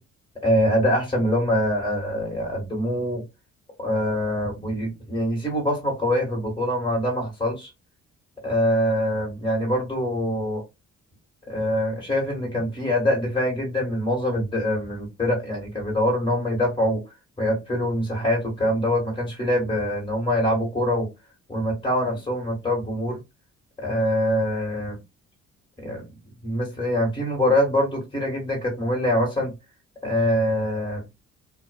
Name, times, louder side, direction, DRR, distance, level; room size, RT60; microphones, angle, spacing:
voice 1, 0.4-3.2 3.8-7.7 8.4-10.6 11.5-17.0 17.4-21.1 21.5-23.2 23.8-25.0 25.8-26.1 26.4-29.5 30.0-31.0, equal, 15° left, 1.6 m, -24 dB
2.4 x 2.3 x 2.3 m
cardioid pair, 90°, 30 cm